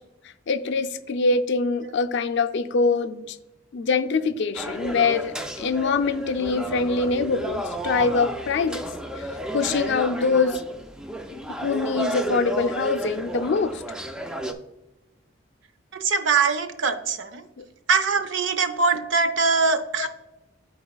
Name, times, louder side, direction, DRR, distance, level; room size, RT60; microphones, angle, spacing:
voice 1, 0.5-3.4 3.7-8.8 9.5-10.6 11.5-13.8 17.6-17.7 20.0-20.1, left 4 dB, 60° left, 10 dB, 0.4 m, -24 dB
sound 1, 4.5-14.5, right 1 dB, 5° right, 0.3 m, -32 dB
voice 2, 15.9-17.5 17.9-20.1, right 4 dB, 65° right, 10 dB, 0.6 m, -22 dB
12.0 x 4.1 x 2.3 m, 0.98 s
head